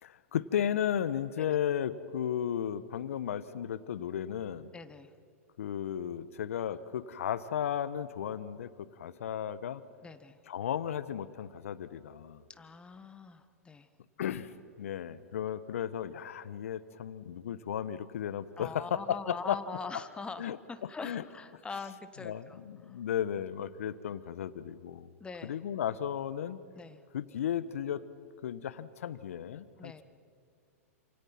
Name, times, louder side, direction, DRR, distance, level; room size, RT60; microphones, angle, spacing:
voice 1, 0.0-4.7 5.6-9.8 10.5-12.4 14.2-14.5 14.8-19.6 20.4-20.6 21.0-21.2 22.2-25.1 25.4-26.6 27.1-28.0 28.4-30.0, left 9 dB, 65° left, 15 dB, 1.3 m, -34 dB
voice 2, 4.7-5.1 10.0-10.4 12.5-13.9 18.6-23.0 25.2-25.6 26.7-27.0 29.8-30.0, left 4 dB, 10° left, 10 dB, 1.5 m, -43 dB
29.0 x 27.0 x 6.0 m, 2.3 s
hypercardioid pair, 105°, 8 cm